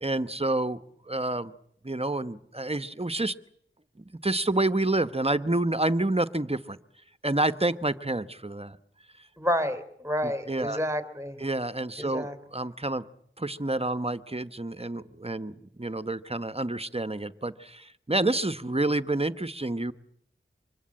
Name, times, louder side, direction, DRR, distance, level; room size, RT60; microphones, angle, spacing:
voice 1, 0.0-0.8 1.1-1.5 1.8-3.3 4.2-6.8 7.2-8.8 10.2-10.8 11.4-13.0 13.4-19.9, right 2 dB, 30° right, 12 dB, 1.0 m, -28 dB
voice 2, 9.4-11.4 12.0-12.4, equal, 15° right, 11 dB, 3.4 m, -29 dB
25.5 x 22.0 x 8.7 m, 0.71 s
wide cardioid pair, 50°, 21 cm